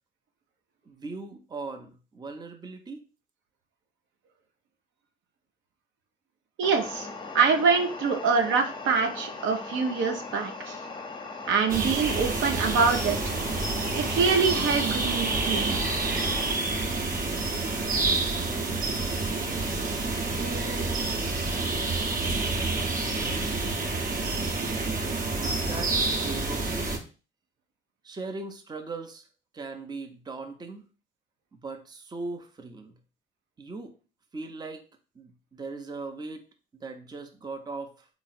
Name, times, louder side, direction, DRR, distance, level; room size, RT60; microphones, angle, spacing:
voice 1, 0.8-3.0 25.6-26.9 28.0-29.3 29.5-30.8 31.5-33.0 33.6-33.9 34.3-34.8 35.2-36.4 36.7-37.9, right 3 dB, 20° right, 6 dB, 0.6 m, -39 dB
sound 1, 6.6-16.5, left 3 dB, 25° left, 0.7 m, -39 dB
voice 2, 6.6-7.1 7.3-10.8 11.4-13.2 13.9-15.8, right 5 dB, 70° right, 4 dB, 0.8 m, -25 dB
sound 2, 11.7-27.0, right 3 dB, 40° right, 0.9 m, -28 dB
3.7 x 2.0 x 4.1 m, 0.35 s
supercardioid pair, 70°, 21 cm